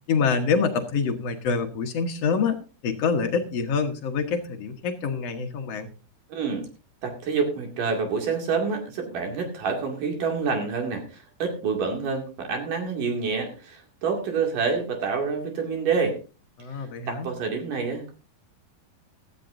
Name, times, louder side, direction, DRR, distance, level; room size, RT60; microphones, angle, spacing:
voice 1, 0.1-2.6 2.8-5.9 16.6-17.3, left 5 dB, 65° left, 5 dB, 1.6 m, -26 dB
voice 2, 6.3-6.7 7.0-16.2 16.7-18.1, right 5 dB, 60° right, 3 dB, 3.8 m, -27 dB
16.5 x 13.5 x 2.6 m, 0.33 s
omnidirectional pair, 4.5 m